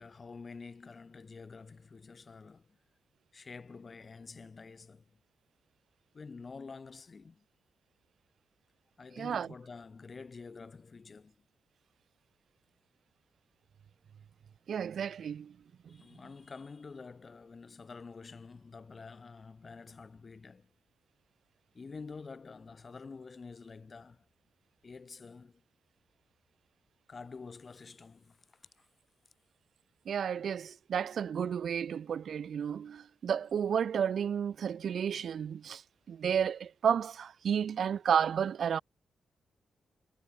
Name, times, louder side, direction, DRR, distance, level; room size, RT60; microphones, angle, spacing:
voice 1, 0.0-2.8 3.3-5.0 6.1-7.4 9.0-11.4 15.9-20.7 21.7-24.2 24.8-25.6 27.1-28.9, left 4 dB, 45° left, 7.8 m, -48 dB
voice 2, 9.2-9.5 14.7-15.6 15.9-16.0 30.1-35.8 36.1-38.8, right 8 dB, 65° right, 0.9 m, -32 dB
supercardioid pair, 50°, 0 cm